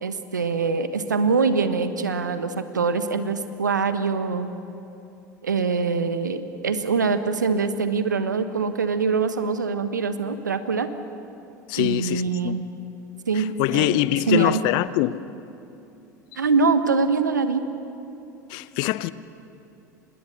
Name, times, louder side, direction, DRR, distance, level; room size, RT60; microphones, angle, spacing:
voice 1, 0.0-4.5 5.4-10.9 11.8-12.7 13.3-14.6 16.4-17.6, right 4 dB, 80° right, 1.2 m, -24 dB
voice 2, 11.7-12.6 13.3-15.2 18.5-19.1, left 17 dB, 50° left, 0.6 m, -24 dB
25.5 x 20.0 x 6.7 m
figure-of-eight pair, 75°, 10 cm